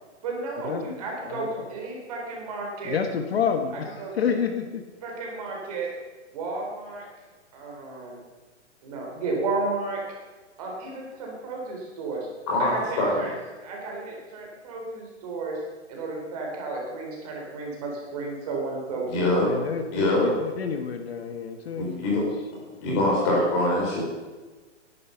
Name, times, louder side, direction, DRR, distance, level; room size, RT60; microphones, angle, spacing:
voice 1, 0.2-3.0 4.0-4.4 5.0-5.9 6.3-7.1 7.5-8.2 8.8-10.1 10.6-12.3 12.6-13.3 13.6-15.6 15.9-19.3, right 3 dB, 30° right, -1 dB, 4.2 m, -33 dB
voice 2, 1.2-1.7 2.9-4.8 19.4-22.3, left 7 dB, 55° left, 6 dB, 1.4 m, -29 dB
voice 3, 19.1-19.5 19.9-20.3 21.7-22.2 22.8-24.0, left 1 dB, 25° left, -2 dB, 4.5 m, -23 dB
17.0 x 11.5 x 5.7 m, 1.3 s
hypercardioid pair, 180°, 37 cm